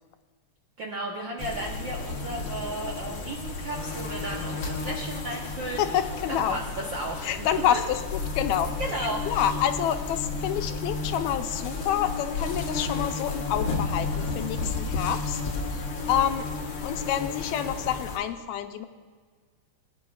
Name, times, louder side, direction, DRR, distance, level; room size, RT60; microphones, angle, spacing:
voice 1, 0.8-5.9 6.3-7.3 7.7-7.8 8.8-9.6, right 1 dB, 65° right, -1 dB, 1.2 m, -34 dB
sound 1, 1.4-18.2, left 4 dB, 55° left, 1.5 m, -32 dB
voice 2, 5.8-6.6 7.2-15.4 15.7-16.5 16.8-18.9, left 10 dB, 85° left, 8 dB, 2.0 m, -28 dB
21.0 x 9.7 x 2.4 m, 1.6 s
omnidirectional pair, 3.3 m